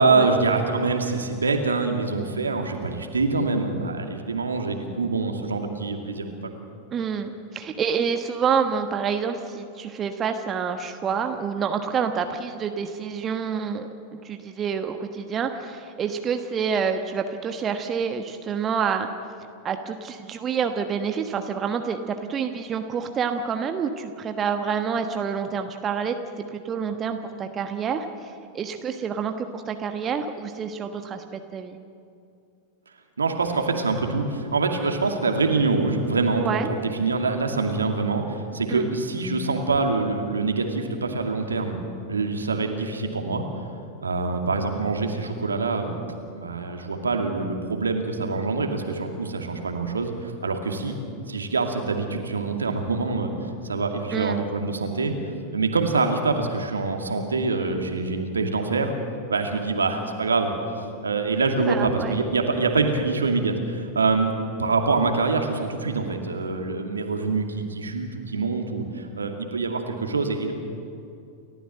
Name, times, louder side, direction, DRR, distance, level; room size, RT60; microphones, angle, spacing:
voice 1, 0.0-6.5 33.2-41.8 42.1-43.4 44.0-51.0 51.3-55.1 55.5-58.9 59.3-60.5 61.0-70.5, right 3 dB, 75° right, 4 dB, 2.4 m, -25 dB
voice 2, 6.9-19.1 19.6-26.2 26.5-31.8 36.4-36.7 38.7-38.9 54.1-54.4 61.7-62.2, right 6 dB, 25° right, 6 dB, 1.2 m, -28 dB
30.0 x 14.0 x 7.7 m, 2.5 s
figure-of-eight pair, 90°, 0 cm